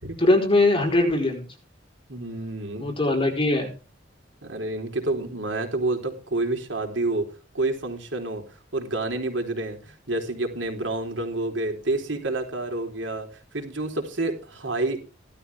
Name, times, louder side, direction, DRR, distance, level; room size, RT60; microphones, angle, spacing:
voice 1, 0.2-1.4 2.8-3.7, left 2 dB, 30° left, 3 dB, 4.3 m, -21 dB
voice 2, 2.1-2.9 4.4-7.3 7.5-13.3 13.5-15.0, right 2 dB, 75° right, 4 dB, 4.0 m, -29 dB
17.0 x 13.0 x 3.6 m, 0.34 s
head